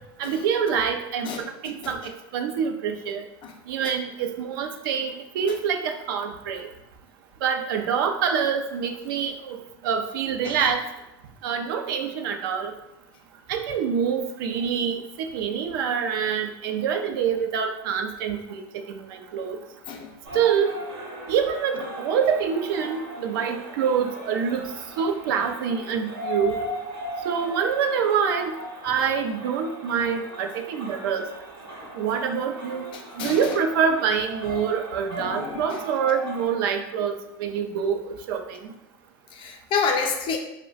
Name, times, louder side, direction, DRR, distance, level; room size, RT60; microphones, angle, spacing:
voice 1, 0.2-3.2 3.7-6.7 7.4-10.8 11.4-12.7 13.5-19.6 20.3-20.8 21.3-24.6 25.0-26.6 27.2-28.5 28.8-31.2 32.0-32.9 33.2-37.1 37.4-38.6, right 7 dB, 70° right, 5 dB, 0.4 m, -26 dB
voice 2, 1.2-1.9 3.4-3.5 10.4-10.6 19.9-20.1 32.9-33.4 35.2-35.6 39.3-40.4, left 5 dB, 45° left, 3 dB, 0.5 m, -29 dB
sound 1, 20.2-36.5, equal, 90° right, 0.8 m, -38 dB
2.3 x 2.1 x 3.9 m, 0.93 s
hypercardioid pair, 100°, 12 cm